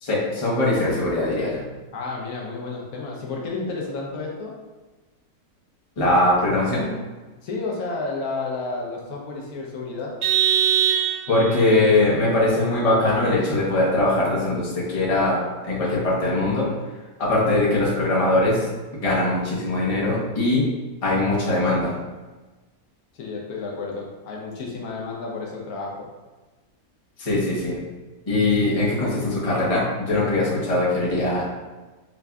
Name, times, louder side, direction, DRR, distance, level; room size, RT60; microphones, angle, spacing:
voice 1, 0.0-1.6 6.0-6.9 11.3-16.7 17.2-18.7 19.0-20.7 21.0-21.9 27.2-27.8 28.3-31.5, left 2 dB, 30° left, -6 dB, 0.8 m, -21 dB
voice 2, 1.9-4.5 7.4-10.1 23.1-25.9, left 3 dB, 80° left, -2 dB, 1.2 m, -31 dB
Vehicle horn car horn honking, 10.2-11.6, right 10 dB, 70° right, 0.4 m, -21 dB
5.3 x 2.5 x 2.3 m, 1.2 s
omnidirectional pair, 1.6 m